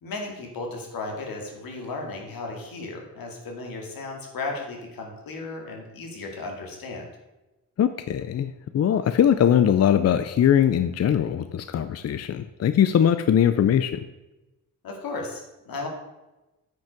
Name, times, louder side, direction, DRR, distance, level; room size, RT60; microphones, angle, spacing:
voice 1, 0.0-7.1 14.8-15.9, left 3 dB, 80° left, 1 dB, 2.2 m, -35 dB
voice 2, 7.8-14.0, left 9 dB, 45° left, 11 dB, 0.5 m, -21 dB
9.1 x 5.3 x 5.2 m, 1.0 s
cardioid pair, 90°, 35 cm